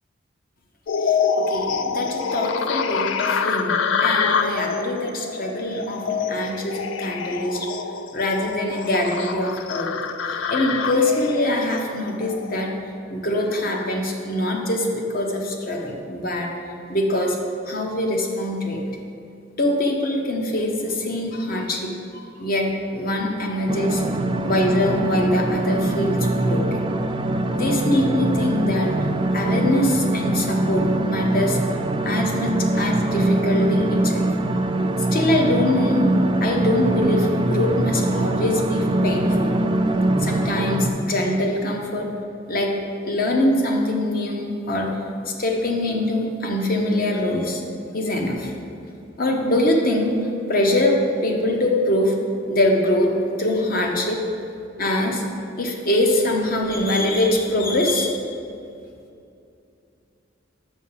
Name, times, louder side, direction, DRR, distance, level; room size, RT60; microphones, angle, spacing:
sound 1, 0.9-12.6, left 6 dB, 80° left, 0.4 m, -26 dB
voice 1, 1.5-7.7 8.1-9.9 10.3-12.7 13.1-16.5 16.9-17.4 17.7-18.8 19.6-24.0 24.4-26.6 27.5-28.9 29.3-31.6 32.0-34.3 35.1-36.1 36.4-39.5 40.2-42.1 42.5-42.7 43.0-44.9 45.3-47.6 47.9-48.5 49.2-50.2 50.5-50.9 51.2-52.1 52.5-54.2 54.8-55.2 55.6-58.2, left 1 dB, 50° left, 1 dB, 1.0 m, -23 dB
sound 2, 23.7-40.9, right 2 dB, 25° right, 0.4 m, -22 dB
6.3 x 5.9 x 5.6 m, 2.6 s
head